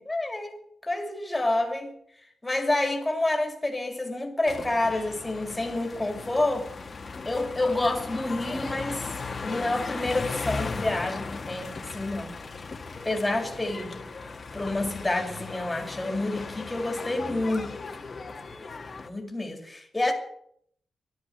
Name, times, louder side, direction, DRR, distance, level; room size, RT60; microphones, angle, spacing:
voice 1, 0.0-1.9 2.4-6.7 7.2-9.1 9.4-12.3 13.0-14.1 14.5-18.1 19.0-20.1, left 2 dB, 10° left, 2.6 m, -28 dB
sound 1, 4.5-19.1, left 4 dB, 30° left, 1.5 m, -37 dB
13.0 x 12.0 x 7.8 m
wide cardioid pair, 175°, 0 cm